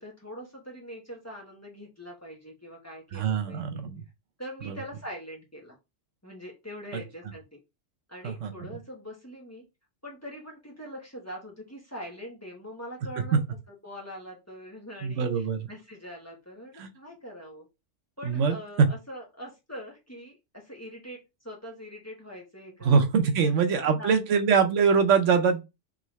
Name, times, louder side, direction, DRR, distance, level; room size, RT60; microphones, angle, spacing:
voice 1, 0.0-3.8 4.4-5.8 6.2-7.6 8.1-9.6 10.0-13.4 13.8-17.7 18.2-24.4, equal, 15° left, 1.1 m, -43 dB
voice 2, 3.1-4.0 4.7-4.8 8.2-8.7 15.0-15.7 16.8-16.9 18.2-18.9 22.8-25.6, right 6 dB, 80° right, 1.1 m, -23 dB
3.7 x 3.2 x 3.1 m
omnidirectional pair, 1.3 m